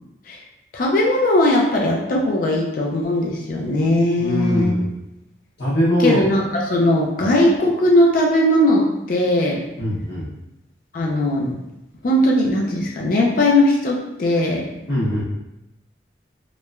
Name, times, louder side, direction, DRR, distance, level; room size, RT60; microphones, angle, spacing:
voice 1, 0.7-4.7 6.0-9.6 10.9-11.5 12.0-14.7, left 1 dB, 45° left, -1 dB, 0.3 m, -19 dB
voice 2, 4.2-4.9 5.6-6.3 7.2-7.3 9.8-10.3 14.9-15.2, equal, 65° left, -9 dB, 0.7 m, -21 dB
2.9 x 2.1 x 2.2 m, 0.89 s
head